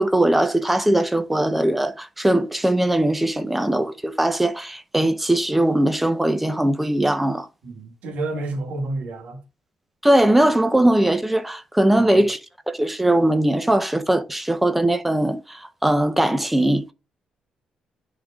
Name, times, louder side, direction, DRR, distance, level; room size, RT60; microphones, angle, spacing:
voice 1, 0.0-7.5 10.0-12.4 12.7-16.9, right 1 dB, 5° right, 0.7 m, -20 dB
voice 2, 7.6-9.4 12.0-12.1, right 2 dB, 80° right, 2.0 m, -29 dB
9.9 x 3.8 x 3.6 m
cardioid pair, 175°, 2 cm